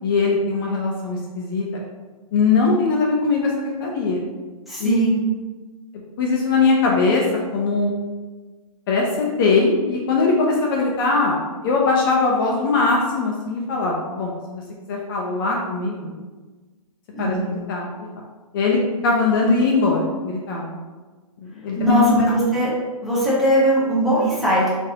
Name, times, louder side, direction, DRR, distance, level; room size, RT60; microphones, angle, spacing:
voice 1, 0.0-1.7 2.3-4.2 4.8-4.9 6.2-7.2 7.5-7.9 8.9-11.4 11.6-14.6 14.9-16.1 17.2-17.9 18.5-20.6 21.4-22.0, left 4 dB, 35° left, -2 dB, 0.5 m, -21 dB
voice 2, 4.7-5.2 17.1-17.6 21.8-22.7 23.0-24.7, right 1 dB, ahead, -9 dB, 0.7 m, -19 dB
3.9 x 2.6 x 2.7 m, 1.3 s
hypercardioid pair, 150°, 19 cm